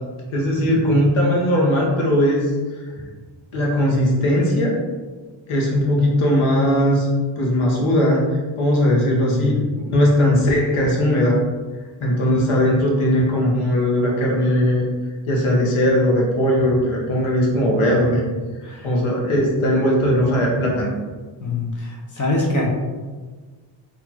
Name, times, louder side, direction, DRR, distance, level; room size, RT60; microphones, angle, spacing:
voice 1, 0.3-2.5 2.9-3.1 3.5-4.8 5.5-7.1 7.4-9.6 9.9-11.4 12.0-14.9 15.3-18.3 18.8-20.9, equal, 90° left, -2 dB, 1.2 m, -19 dB
voice 2, 9.1-9.6 18.7-18.9 21.4-22.7, left 2 dB, 40° left, -1 dB, 1.1 m, -24 dB
4.4 x 2.9 x 2.9 m, 1.4 s
cardioid pair, 90°, 48 cm